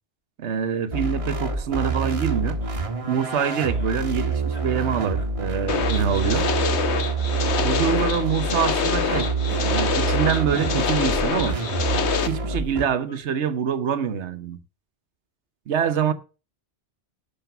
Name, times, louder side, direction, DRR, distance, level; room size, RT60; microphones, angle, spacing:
voice 1, 0.4-2.6 3.1-6.5 7.6-9.3 9.6-11.6 12.3-14.6 15.7-16.1, right 7 dB, 85° right, 1.2 m, -25 dB
sound 1, 0.9-12.9, right 4 dB, 30° right, 1.6 m, -27 dB
Laughter, 1.8-4.0 4.3-5.8 6.1-7.3 7.9-11.0 11.4-13.3, equal, 10° left, 2.0 m, -44 dB
sound 2, 5.7-12.3, left 6 dB, 85° left, 1.3 m, -26 dB
12.0 x 6.2 x 6.8 m
omnidirectional pair, 1.1 m